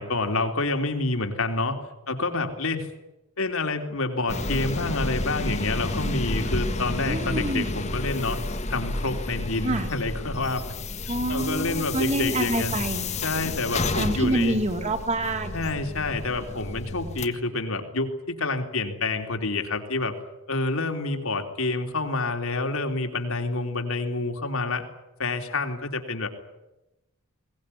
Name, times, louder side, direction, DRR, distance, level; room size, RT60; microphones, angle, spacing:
voice 1, 0.0-1.8 2.1-2.9 3.4-8.4 8.7-10.6 11.3-12.7 13.2-14.6 15.5-20.1 20.5-24.8 25.2-26.3, left 3 dB, 75° left, 5 dB, 3.4 m, -28 dB
sound 1, 4.3-17.3, left 2 dB, 30° left, 1.5 m, -31 dB
voice 2, 7.1-7.7 9.6-9.9 11.1-13.0 14.0-15.6, right 1 dB, 30° right, 5 dB, 3.1 m, -27 dB
22.0 x 19.5 x 10.0 m, 0.95 s
head